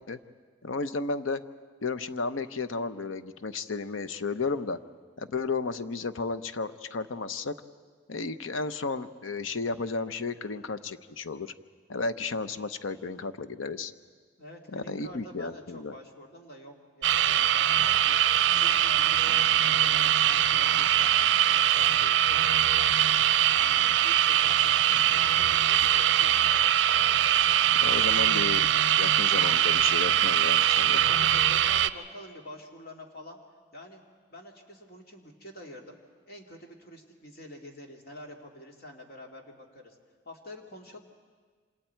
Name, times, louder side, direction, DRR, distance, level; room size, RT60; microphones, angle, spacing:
voice 1, 0.6-1.4 1.8-4.8 5.2-7.5 8.1-11.5 11.9-13.9 14.7-15.9 27.8-28.7 28.9-31.0, left 4 dB, 85° left, 12 dB, 0.8 m, -33 dB
voice 2, 14.4-22.9 23.5-26.4 30.9-33.4 33.7-34.0 34.3-36.0 36.3-40.0 40.2-41.0, left 1 dB, 50° left, 1 dB, 2.4 m, -47 dB
sound 1, 17.0-31.9, right 11 dB, 65° right, 0.5 m, -22 dB
27.5 x 26.5 x 4.6 m, 1.5 s
head